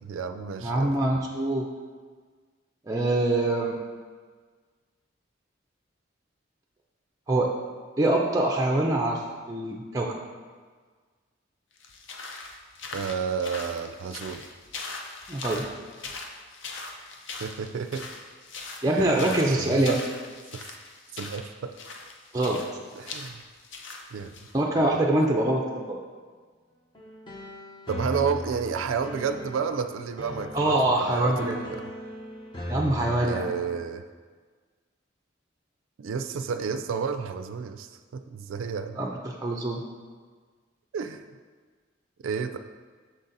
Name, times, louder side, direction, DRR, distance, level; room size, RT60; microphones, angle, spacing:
voice 1, 0.0-0.9 12.9-14.5 17.4-18.1 18.8-20.0 20.5-20.7 21.1-21.8 23.0-23.4 24.1-24.3 24.8-24.9 27.9-31.9 33.2-34.0 36.0-39.0 40.9-41.2 42.2-42.6, right 6 dB, 85° right, 8 dB, 0.3 m, -31 dB
voice 2, 0.6-1.7 2.9-3.8 7.3-7.5 8.0-9.2 9.5-10.2 15.3-15.6 18.8-20.0 22.3-22.6 24.5-26.0 30.5-31.6 32.7-33.5 39.0-39.8, right 1 dB, 15° right, -1 dB, 0.4 m, -24 dB
sound 1, 11.8-24.6, left 3 dB, 70° left, 0.6 m, -40 dB
sound 2, 26.9-33.5, equal, 25° left, 0.7 m, -38 dB
6.4 x 4.1 x 3.9 m, 1.5 s
head